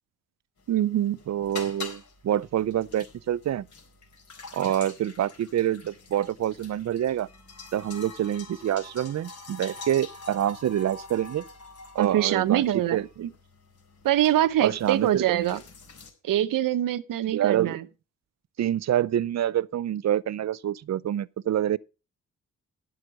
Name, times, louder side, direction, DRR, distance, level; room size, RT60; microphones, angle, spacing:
sound 1, 0.6-16.1, left 4 dB, 60° left, 4.2 m, -45 dB
voice 1, 0.7-1.2 12.0-13.3 14.0-15.6 16.2-17.8, right 12 dB, 80° right, 0.9 m, -24 dB
voice 2, 1.3-3.7 4.5-7.3 7.7-11.4 11.9-12.6 12.9-13.0 14.6-15.5 17.3-17.8 18.6-21.8, right 11 dB, 55° right, 0.6 m, -26 dB
10.0 x 7.9 x 5.2 m
cardioid pair, 60°, 32 cm